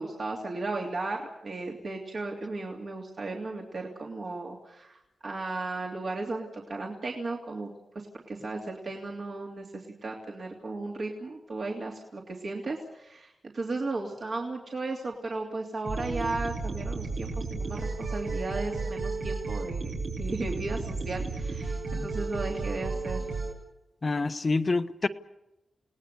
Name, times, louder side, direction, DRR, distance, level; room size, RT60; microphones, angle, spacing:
voice 1, 0.0-19.9 20.2-23.3, right 3 dB, 55° right, -1 dB, 3.0 m, -35 dB
sound 1, 15.8-23.5, right 3 dB, 85° right, 5.2 m, -33 dB
voice 2, 24.0-25.1, left 3 dB, 40° left, 9 dB, 1.0 m, -27 dB
29.5 x 18.0 x 6.8 m, 0.93 s
cardioid pair, 85°, 0 cm